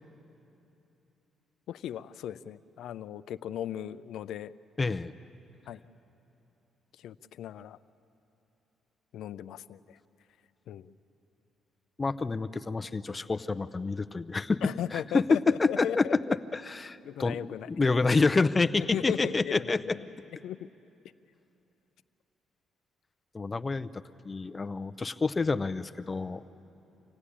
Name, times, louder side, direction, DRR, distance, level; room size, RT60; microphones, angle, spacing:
voice 1, 1.7-4.5 5.7-5.8 6.9-7.8 9.1-10.0 10.7-10.9 14.6-16.1 17.0-17.7 18.9-20.0 20.4-20.7, left 10 dB, 80° left, 14 dB, 0.5 m, -37 dB
voice 2, 4.8-5.1 12.0-19.8 23.3-26.5, left 3 dB, 25° left, 13 dB, 0.6 m, -28 dB
25.5 x 16.0 x 10.0 m, 3.0 s
cardioid pair, 90°, 0 cm